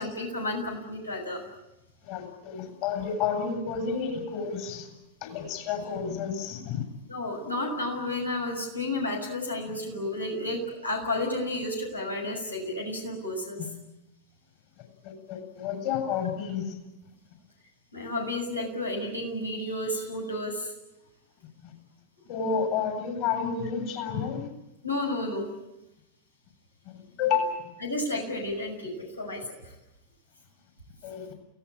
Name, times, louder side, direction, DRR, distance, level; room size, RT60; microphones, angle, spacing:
voice 1, 0.0-1.4 7.1-13.6 17.9-20.7 24.8-25.5 27.8-29.7, left 1 dB, 80° left, 1 dB, 6.9 m, -32 dB
voice 2, 2.0-4.9 5.2-6.8 9.7-9.8 13.6-13.7 15.0-16.8 21.6-21.7 22.3-24.5 26.8-27.5 31.0-31.3, left 6 dB, 45° left, 3 dB, 7.6 m, -30 dB
29.5 x 18.5 x 8.9 m, 0.94 s
figure-of-eight pair, 90°, 0 cm